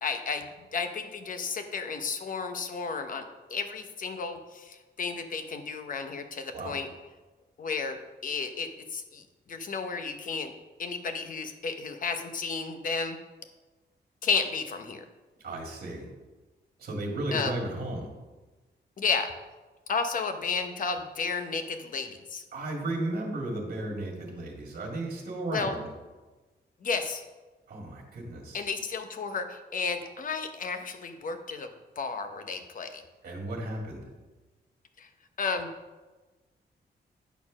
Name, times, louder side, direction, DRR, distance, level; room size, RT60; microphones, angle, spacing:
voice 1, 0.0-6.9 7.6-10.5 10.8-13.2 14.2-15.0 17.3-17.6 19.0-19.3 19.9-22.4 25.5-25.7 26.8-27.2 28.5-31.7 32.0-33.0 35.0-35.1 35.4-35.7, left 5 dB, 45° left, 7 dB, 0.8 m, -32 dB
voice 2, 15.4-16.1 16.8-18.1 22.5-25.9 27.7-28.7 33.2-34.1, right 1 dB, 55° right, 0 dB, 1.8 m, -34 dB
9.2 x 4.4 x 5.9 m, 1.2 s
wide cardioid pair, 170°, 18 cm